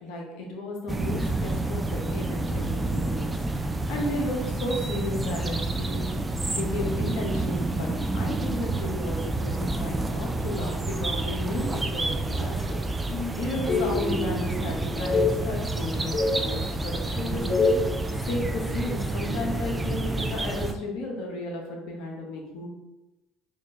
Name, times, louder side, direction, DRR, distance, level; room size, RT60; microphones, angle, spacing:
voice 1, 0.0-3.3 3.6-6.1 6.5-12.8 13.3-22.7, left 1 dB, 70° left, -1 dB, 0.9 m, -34 dB
sound 1, 0.9-20.7, right 2 dB, 20° right, 0.4 m, -29 dB
sound 2, 13.1-13.3 13.7-14.5 15.0-15.3 15.8-16.4 17.2-17.9, left 3 dB, 40° left, 0.6 m, -26 dB
4.3 x 2.5 x 3.1 m, 1.0 s
hypercardioid pair, 70°, 0 cm